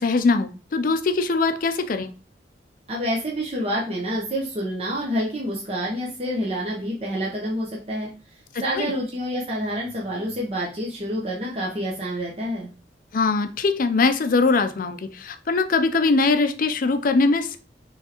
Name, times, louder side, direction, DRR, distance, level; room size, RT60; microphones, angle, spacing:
voice 1, 0.0-2.1 8.8-8.9 13.1-17.6, left 3 dB, 50° left, 8 dB, 0.4 m, -21 dB
voice 2, 2.9-12.7, equal, 35° right, -3 dB, 0.8 m, -28 dB
4.4 x 3.2 x 2.9 m, 0.36 s
head